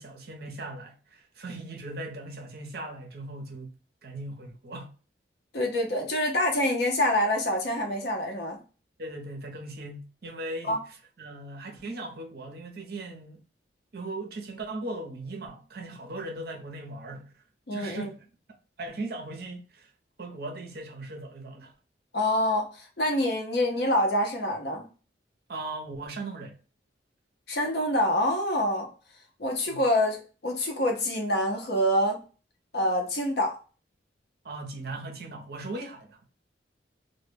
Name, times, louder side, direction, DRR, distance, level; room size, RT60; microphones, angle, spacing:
voice 1, 0.0-3.8 4.0-4.9 9.0-10.8 11.2-13.4 13.9-17.4 17.7-18.2 18.8-19.9 20.2-21.7 25.5-26.6 29.7-29.8 34.4-36.3, right 2 dB, 55° right, 0.6 m, -38 dB
voice 2, 5.5-8.6 10.7-10.8 17.7-18.1 22.1-24.9 27.5-28.9 29.4-32.2 32.7-33.5, left 1 dB, 60° left, 0.6 m, -26 dB
2.1 x 2.0 x 3.2 m
head